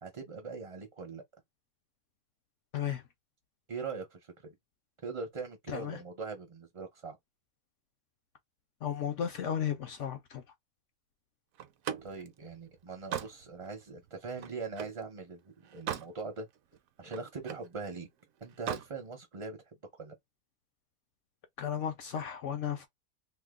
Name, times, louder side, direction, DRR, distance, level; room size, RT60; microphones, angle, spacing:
voice 1, 0.0-1.2 3.7-4.5 5.0-7.2 12.0-16.5 17.0-18.1 18.4-19.6 19.9-20.1, right 4 dB, 35° right, 0.5 m, -41 dB
voice 2, 2.7-3.0 5.7-6.0 8.8-10.4 21.6-22.9, left 9 dB, 65° left, 0.7 m, -34 dB
Slam, 11.6-15.0 15.5-16.2 16.5-17.7 18.5-18.9, right 10 dB, 70° right, 0.9 m, -40 dB
2.7 x 2.3 x 3.6 m
omnidirectional pair, 1.7 m